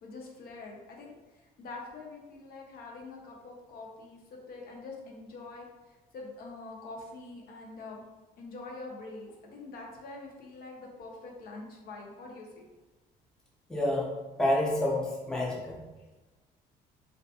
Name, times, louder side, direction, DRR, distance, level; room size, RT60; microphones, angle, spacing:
voice 1, 0.0-5.7 6.1-8.0 8.4-12.7, left 3 dB, 65° left, -1 dB, 0.6 m, -45 dB
voice 2, 13.7-14.1 14.4-15.7, left 1 dB, 5° left, -3 dB, 0.5 m, -28 dB
2.5 x 2.4 x 2.4 m, 1.1 s
cardioid pair, 110°, 17 cm